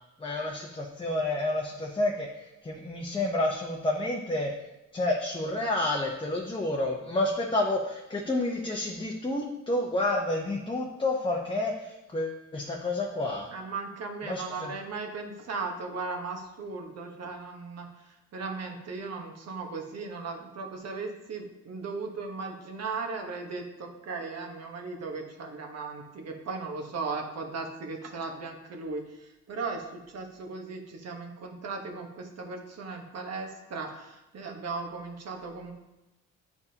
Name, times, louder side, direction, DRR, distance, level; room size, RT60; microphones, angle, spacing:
voice 1, 0.2-2.3 2.6-4.5 4.9-13.5 14.2-14.4, left 2 dB, 15° left, -1 dB, 0.8 m, -29 dB
voice 2, 13.5-35.7, right 4 dB, 55° right, 3 dB, 1.3 m, -37 dB
9.4 x 4.8 x 2.9 m, 0.98 s
cardioid pair, 90°, 30 cm